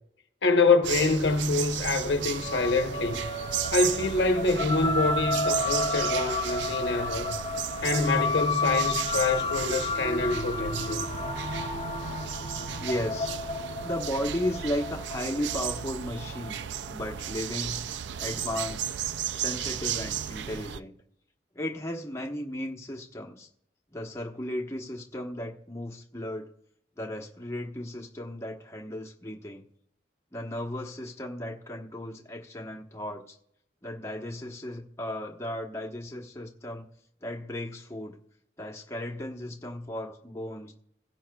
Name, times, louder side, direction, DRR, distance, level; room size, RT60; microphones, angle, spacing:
voice 1, 0.4-3.3 3.7-7.4 7.8-11.0, left 3 dB, 75° left, 0.9 m, -26 dB
sound 1, 0.8-20.8, right 9 dB, 80° right, 0.4 m, -34 dB
sound 2, 2.2-16.9, left 3 dB, 35° left, 0.9 m, -32 dB
voice 2, 12.4-13.3 13.8-16.6 16.9-17.9 18.2-18.9 19.3-21.0 21.5-23.5 23.9-26.5 26.9-29.6 30.3-33.4 33.8-36.9 37.2-38.2 38.6-40.7, left 1 dB, 15° left, 1.1 m, -35 dB
16.0 x 9.0 x 2.3 m
head